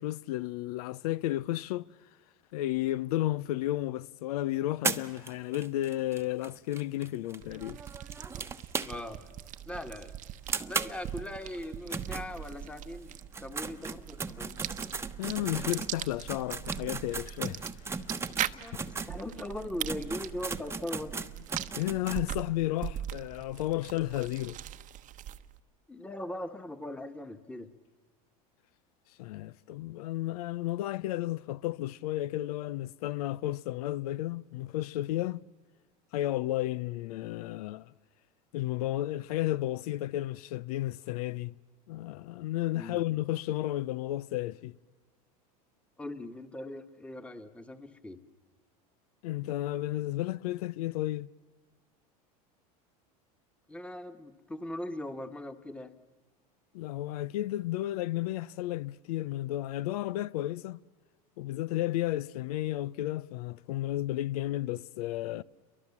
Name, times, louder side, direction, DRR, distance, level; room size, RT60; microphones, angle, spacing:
voice 1, 0.0-1.9 2.5-7.8 15.2-17.6 21.8-24.6 29.2-35.4 36.1-37.9 38.5-41.6 41.9-44.8 49.2-51.3 56.7-60.8 61.4-65.4, left 15 dB, 75° left, 0.7 m, -33 dB
sound 1, 4.8-9.3 9.6-9.7 10.0-10.1 10.5-12.8 13.2-19.1 19.6-19.7 19.9-22.2, right 4 dB, 15° right, 1.1 m, -37 dB
sound 2, 7.4-25.6, right 12 dB, 45° right, 1.0 m, -41 dB
voice 2, 8.8-9.3 9.6-10.1 10.7-14.5 18.5-21.1 25.9-27.7 42.7-43.0 46.0-48.2 53.7-55.9, left 1 dB, 5° left, 1.6 m, -40 dB
29.5 x 23.5 x 7.3 m
supercardioid pair, 110°, 19 cm